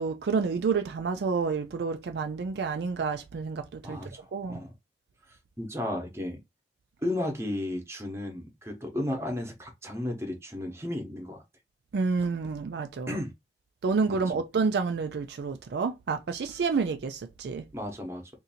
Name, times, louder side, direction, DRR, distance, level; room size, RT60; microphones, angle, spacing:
voice 1, 0.0-4.6 11.9-13.2 13.8-17.6, right 4 dB, 65° right, 0.4 m, -29 dB
voice 2, 3.8-4.7 5.6-6.4 7.0-11.4 13.1-13.3 14.1-14.2 17.7-18.2, left 1 dB, 15° right, 0.9 m, -34 dB
2.6 x 2.5 x 4.1 m
head